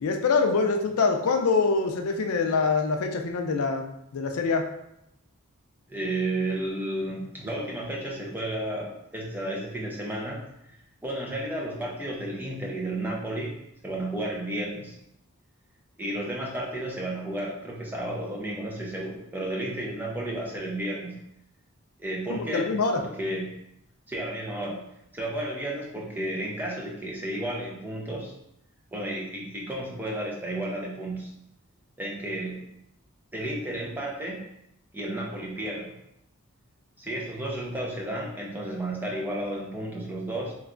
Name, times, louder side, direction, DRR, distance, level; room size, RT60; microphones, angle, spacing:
voice 1, 0.0-4.6 22.3-23.0, left 4 dB, 90° left, 4 dB, 0.4 m, -25 dB
voice 2, 5.9-10.4 11.0-13.6 13.8-15.0 16.0-21.2 22.0-22.7 22.9-23.5 24.1-24.9 25.1-28.3 28.9-31.3 32.0-32.7 33.3-34.5 34.9-35.9 37.0-40.5, right 1 dB, 10° right, -3 dB, 0.5 m, -32 dB
3.1 x 2.2 x 3.7 m, 0.80 s
head